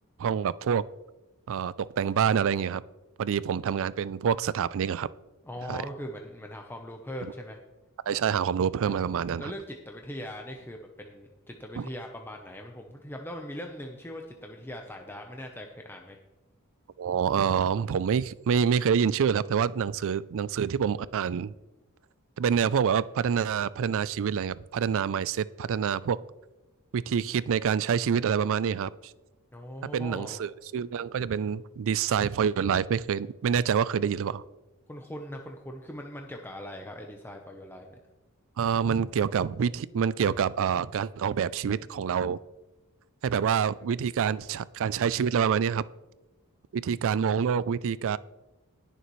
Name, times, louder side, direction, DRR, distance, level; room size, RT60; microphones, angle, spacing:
voice 1, 0.2-0.8 1.5-2.8 3.2-5.1 5.7-5.8 8.1-9.5 11.8-11.9 17.0-21.5 22.4-26.2 26.9-28.9 29.9-34.4 38.6-42.4 43.2-45.8 46.7-48.2, right 7 dB, 65° right, 19 dB, 0.4 m, -27 dB
voice 2, 5.4-7.6 8.9-9.0 9.4-16.2 29.5-30.4 34.9-37.9 43.3-44.0, equal, 10° left, 2 dB, 0.8 m, -40 dB
20.0 x 6.7 x 3.1 m, 1.1 s
head